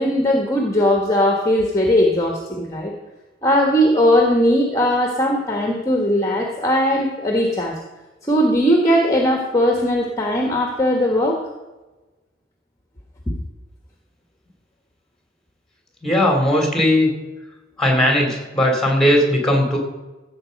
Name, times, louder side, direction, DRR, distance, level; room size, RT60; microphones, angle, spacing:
voice 1, 0.0-2.9 3.4-7.7 8.3-11.4, equal, 20° left, 1 dB, 1.4 m, -18 dB
voice 2, 16.0-17.1 17.8-19.8, left 1 dB, 5° left, 2 dB, 3.0 m, -17 dB
15.5 x 7.6 x 5.3 m, 1.1 s
head